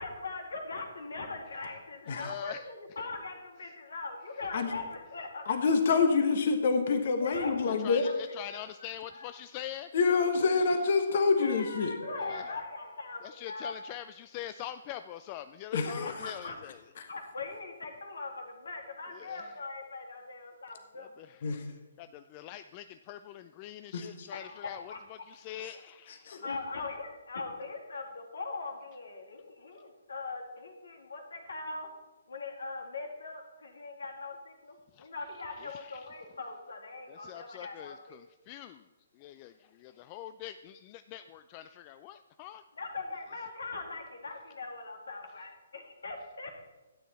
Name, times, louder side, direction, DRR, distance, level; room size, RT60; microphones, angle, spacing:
voice 1, 0.0-5.5 7.2-7.5 8.0-8.1 8.5-9.3 11.4-13.7 15.8-16.6 17.1-21.1 24.3-25.0 26.4-31.9 32.3-38.2 42.8-46.5, left 3 dB, 65° left, 2.1 m, -41 dB
voice 2, 2.1-2.7 7.8-9.9 10.6-10.7 12.2-12.4 13.2-16.8 19.1-19.4 21.0-21.4 22.0-26.5 34.9-35.1 35.6-36.1 37.1-38.9 39.1-42.6, left 12 dB, 30° left, 0.3 m, -44 dB
voice 3, 5.5-8.1 9.9-11.9 15.7-16.1 17.0-17.1 21.4-21.7 23.9-24.3 26.1-26.4, left 4 dB, 50° left, 1.3 m, -27 dB
12.5 x 9.3 x 4.2 m
figure-of-eight pair, 130°, 0 cm